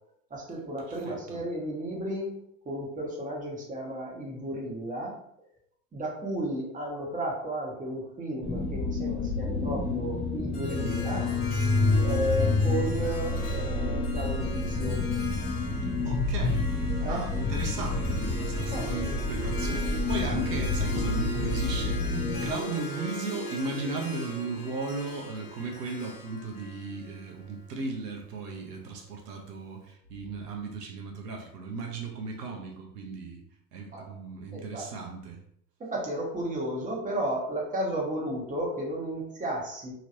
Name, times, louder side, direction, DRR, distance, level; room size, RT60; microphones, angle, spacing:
voice 1, 0.3-2.3 2.6-5.2 5.9-11.3 12.0-15.0 17.0-17.2 18.7-18.9 33.9-34.0 34.5-34.9 35.8-39.9, right 1 dB, 15° right, -3 dB, 1.1 m, -33 dB
voice 2, 1.0-1.4 16.0-16.7 17.1-33.4 33.7-35.4, right 3 dB, 80° right, 1 dB, 0.8 m, -36 dB
sound 1, 8.4-22.5, left 3 dB, 5° left, 0.5 m, -28 dB
Harp, 10.5-27.8, equal, 50° left, 1.3 m, -40 dB
3.0 x 2.9 x 2.5 m, 0.71 s
hypercardioid pair, 80°, 47 cm